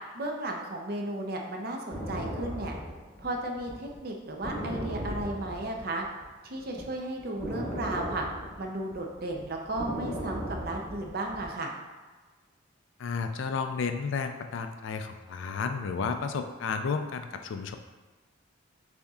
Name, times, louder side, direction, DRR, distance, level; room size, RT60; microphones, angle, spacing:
voice 1, 0.1-2.7 3.2-6.0 6.4-8.3 8.6-11.7, right 1 dB, 45° right, 1 dB, 0.5 m, -34 dB
sound 1, 1.9-6.3 6.6-11.5, equal, 15° left, 0.9 m, -37 dB
voice 2, 13.0-17.8, left 5 dB, 65° left, 7 dB, 0.3 m, -32 dB
6.8 x 2.7 x 2.4 m, 1.3 s
head